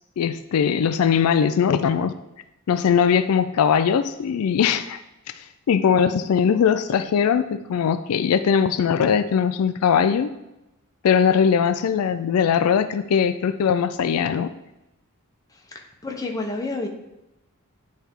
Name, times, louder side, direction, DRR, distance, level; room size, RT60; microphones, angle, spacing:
voice 1, 0.2-2.1 2.7-5.0 5.3-10.3 11.0-14.5, left 7 dB, 75° left, 11 dB, 0.4 m, -20 dB
voice 2, 15.7-16.9, left 2 dB, 15° left, 1 dB, 0.9 m, -30 dB
10.0 x 3.4 x 4.5 m, 0.94 s
head